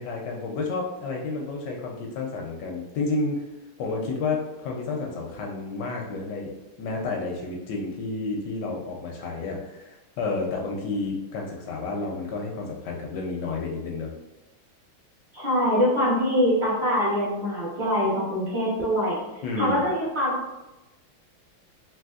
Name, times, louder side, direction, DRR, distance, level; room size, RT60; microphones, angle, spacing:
voice 1, 0.0-3.5 3.8-14.1 19.4-19.8, left 3 dB, 75° left, 0 dB, 1.0 m, -31 dB
voice 2, 15.3-19.2 19.5-20.4, equal, 50° right, -8 dB, 0.5 m, -24 dB
3.4 x 2.8 x 2.3 m, 1.0 s
omnidirectional pair, 2.3 m